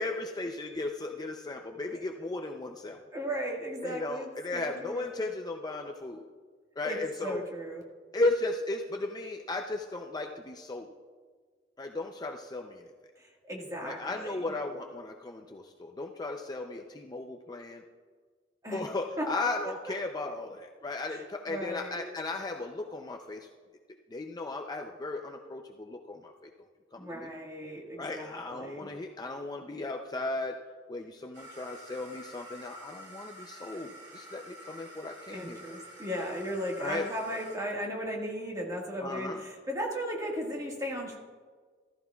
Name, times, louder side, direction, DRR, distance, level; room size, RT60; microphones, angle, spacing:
voice 1, 0.0-3.0 3.8-6.2 6.8-7.4 8.1-10.9 11.8-12.9 13.8-17.8 18.7-23.5 24.1-26.5 26.9-27.3 28.0-30.6 30.9-35.6 36.8-37.1 39.0-39.4, left 2 dB, 20° left, 3 dB, 0.5 m, -35 dB
voice 2, 3.1-5.1 6.8-7.8 13.2-14.4 18.6-18.8 19.2-19.3 21.1-22.0 27.0-28.9 35.3-41.2, equal, 20° right, -1 dB, 1.6 m, -36 dB
sound 1, 31.3-37.6, equal, 70° right, 2.6 m, -49 dB
14.5 x 14.0 x 2.3 m, 1.5 s
head